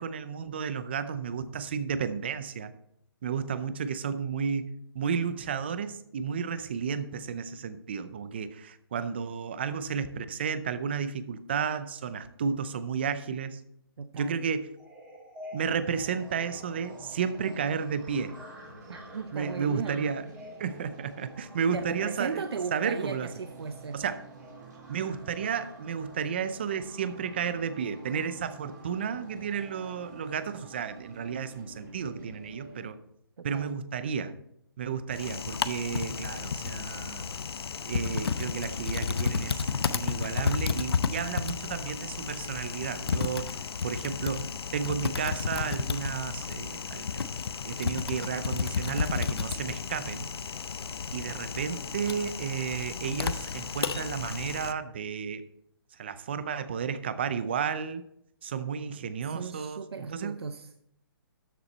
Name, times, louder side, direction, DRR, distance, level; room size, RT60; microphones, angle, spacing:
voice 1, 0.0-2.7 3.2-13.6 14.1-14.7 15.5-18.3 19.3-20.2 20.6-23.3 23.9-24.2 24.9-33.0 33.4-34.3 34.8-37.3 37.8-44.5 44.7-47.2 47.6-50.3 51.1-55.4 56.0-58.0 58.4-60.4, right 6 dB, 25° right, 12 dB, 0.5 m, -32 dB
voice 2, 14.0-14.4 18.9-20.1 21.7-24.0 33.4-33.8 59.2-60.7, right 5 dB, 90° right, 8 dB, 0.8 m, -37 dB
sound 1, 14.8-26.3, equal, 5° right, 2.1 m, -51 dB
sound 2, 15.9-32.9, right 2 dB, 45° right, 3.8 m, -49 dB
Typing, 35.1-54.7, left 5 dB, 85° left, 0.8 m, -32 dB
13.0 x 7.1 x 4.2 m, 0.74 s
hypercardioid pair, 175°, 13 cm